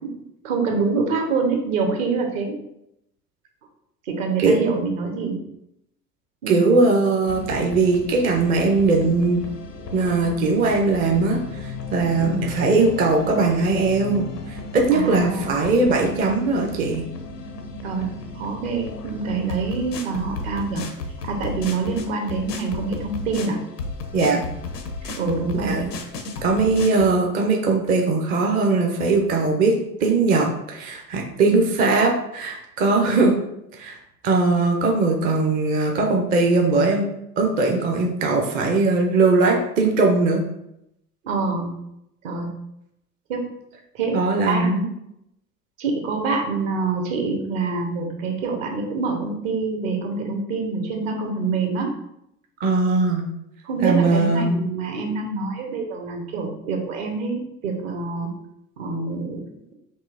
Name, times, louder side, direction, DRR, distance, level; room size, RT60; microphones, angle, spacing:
voice 1, 0.0-2.5 4.1-5.4 6.4-6.7 12.2-12.5 14.9-15.5 17.8-18.1 18.3-20.8 21.2-23.6 25.1-25.9 31.4-31.7 33.0-33.3 41.2-41.7 42.2-42.5 43.3-43.4 43.9-44.2 44.5-44.7 45.8-51.9 53.6-57.4 57.6-58.3 58.8-59.4, right 4 dB, 55° right, 3 dB, 1.1 m, -26 dB
voice 2, 6.5-9.4 9.9-17.1 24.1-24.4 25.0-25.1 25.6-25.9 26.4-33.3 33.8-34.0 34.2-37.1 37.4-40.4 44.1-44.9 52.6-53.3 53.8-54.6, right 3 dB, 20° right, 1 dB, 0.4 m, -20 dB
sound 1, 7.2-27.1, left 3 dB, 85° left, 0.6 m, -35 dB
5.3 x 2.8 x 2.5 m, 0.80 s
figure-of-eight pair, 75°, 48 cm